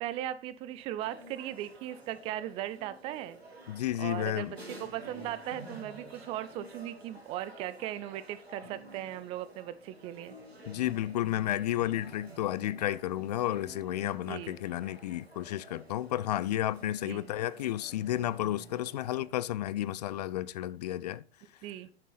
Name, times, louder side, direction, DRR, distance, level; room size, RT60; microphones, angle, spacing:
voice 1, 0.0-3.4 4.0-10.4 12.3-12.4 14.2-14.6 16.8-17.3 21.6-21.9, right 13 dB, 20° right, 0.4 m, -38 dB
sound 1, 1.0-19.2, right 1 dB, 80° right, 3.1 m, -51 dB
voice 2, 3.7-4.5 10.7-21.2, left 13 dB, 40° left, 0.4 m, -32 dB
10.0 x 6.5 x 4.0 m
figure-of-eight pair, 105°, 31 cm